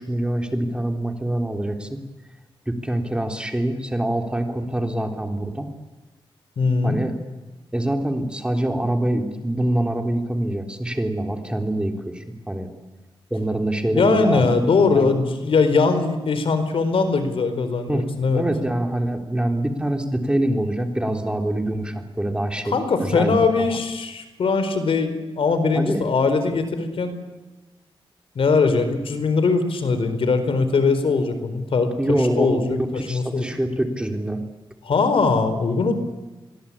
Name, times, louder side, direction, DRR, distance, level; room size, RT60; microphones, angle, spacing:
voice 1, 0.0-2.0 2.7-5.7 6.8-7.1 7.7-12.7 13.3-14.6 14.9-15.2 17.9-22.8 23.0-23.8 25.7-26.1 32.0-34.4, right 1 dB, 10° right, 5 dB, 3.4 m, -25 dB
voice 2, 6.6-7.0 13.9-18.4 22.7-27.1 28.3-33.5 34.8-35.9, left 4 dB, 80° left, 9 dB, 4.3 m, -21 dB
29.5 x 23.0 x 8.7 m, 1.2 s
wide cardioid pair, 120°, 9 cm